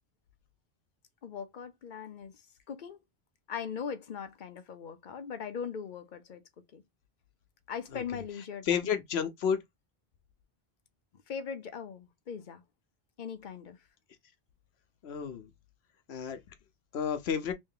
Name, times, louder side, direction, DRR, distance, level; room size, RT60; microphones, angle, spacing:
voice 1, 1.2-2.3 2.7-3.0 3.5-6.4 6.7-6.8 7.7-8.8 11.3-12.6 13.2-13.8, left 7 dB, 55° left, 0.7 m, -40 dB
voice 2, 8.6-9.6 15.0-15.5 16.1-16.4 16.9-17.5, left 7 dB, 85° left, 1.0 m, -31 dB
3.1 x 2.7 x 3.7 m
omnidirectional pair, 1.0 m